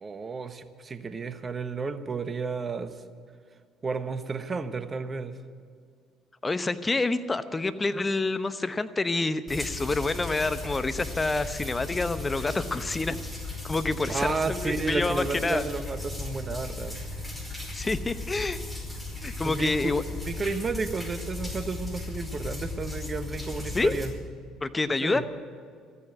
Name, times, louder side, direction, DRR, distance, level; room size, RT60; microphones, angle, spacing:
voice 1, 0.0-3.0 3.8-5.4 14.1-17.0 19.4-24.1 25.0-25.3, right 4 dB, 35° right, 10 dB, 1.1 m, -32 dB
voice 2, 6.4-13.2 13.6-15.6 17.7-18.6 19.2-20.0 23.7-23.9 24.6-25.3, left 3 dB, 25° left, 12 dB, 0.9 m, -27 dB
sound 1, 9.5-24.1, left 3 dB, 5° left, 5.0 m, -36 dB
14.0 x 9.8 x 9.1 m, 2.1 s
hypercardioid pair, 60°, 0 cm